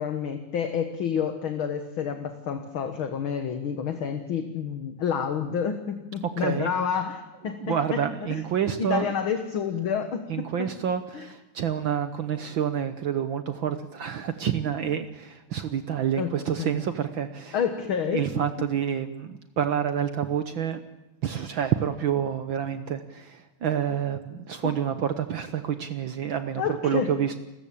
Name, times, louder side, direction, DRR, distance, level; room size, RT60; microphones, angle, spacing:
voice 1, 0.0-8.0 8.3-8.4 8.8-10.7 11.1-11.2 16.2-16.8 17.5-18.3 24.6-24.7 26.6-27.1, left 7 dB, 50° left, 8 dB, 1.7 m, -29 dB
voice 2, 6.4-6.7 7.6-9.1 10.3-17.6 18.1-20.8 21.2-27.4, right 8 dB, 75° right, 10 dB, 1.1 m, -28 dB
29.5 x 14.0 x 8.5 m, 1.1 s
omnidirectional pair, 3.6 m